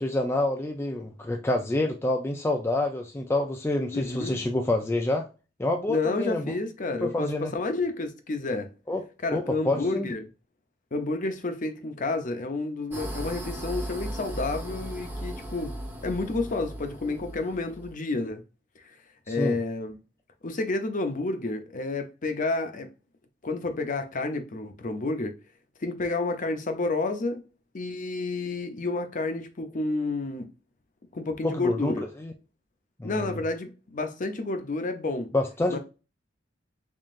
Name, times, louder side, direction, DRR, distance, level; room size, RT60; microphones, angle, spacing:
voice 1, 0.0-5.3 5.6-6.5 7.0-7.5 8.9-9.0 9.3-10.1 19.3-19.6 31.4-31.9 32.2-32.3 33.0-33.4 35.3-35.8, left 2 dB, 15° left, 0.4 m, -27 dB
voice 2, 3.9-4.4 5.9-8.7 9.2-10.2 10.9-15.7 16.0-18.4 18.8-18.9 19.3-20.0 20.4-22.9 23.4-25.3 25.8-27.4 27.7-30.5 31.1-32.0 33.0-35.3 35.7-35.8, left 3 dB, 40° left, 0.7 m, -30 dB
sound 1, 12.9-17.9, right 1 dB, 10° right, 0.9 m, -37 dB
3.7 x 3.7 x 2.4 m
head